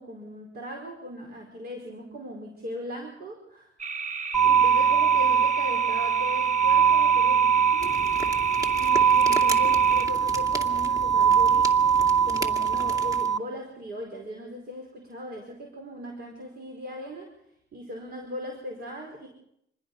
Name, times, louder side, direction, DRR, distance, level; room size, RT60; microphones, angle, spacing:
voice 1, 0.0-4.2 4.4-8.0 8.7-17.3 17.7-19.3, left 1 dB, 55° right, 2 dB, 4.8 m, -39 dB
sound 1, 3.8-10.1, right 5 dB, 35° right, 1.5 m, -33 dB
sound 2, 4.3-13.4, right 7 dB, ahead, 0.9 m, -22 dB
sound 3, 7.8-13.3, equal, 15° right, 2.4 m, -37 dB
26.5 x 20.0 x 5.5 m, 0.77 s
cardioid pair, 90°, 20 cm